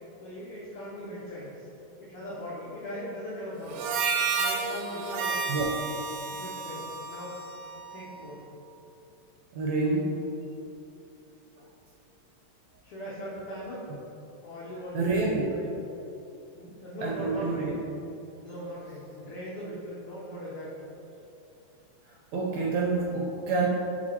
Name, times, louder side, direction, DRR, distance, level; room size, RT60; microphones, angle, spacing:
voice 1, 0.2-1.7 2.0-3.8 4.3-5.4 6.3-7.4 7.9-8.4 12.8-13.8 14.4-15.7 16.5-17.8 18.4-20.9, equal, 75° left, -7 dB, 1.3 m, -39 dB
Harmonica, 3.7-8.3, right 5 dB, 90° right, 2.3 m, -32 dB
voice 2, 9.5-10.1 14.9-15.4 17.0-17.7 22.3-23.7, right 3 dB, 75° right, -3 dB, 1.7 m, -27 dB
7.6 x 4.2 x 4.4 m, 2.9 s
omnidirectional pair, 3.9 m